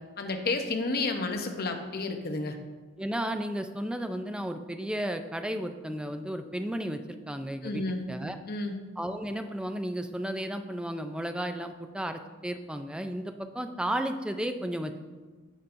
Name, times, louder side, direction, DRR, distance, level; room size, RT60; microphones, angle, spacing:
voice 1, 0.2-2.5 7.6-8.0 8.5-8.8, left 3 dB, 50° left, 5 dB, 0.8 m, -31 dB
voice 2, 3.0-8.4 9.0-15.0, right 1 dB, 5° right, 7 dB, 0.4 m, -33 dB
9.9 x 7.0 x 2.6 m, 1.3 s
head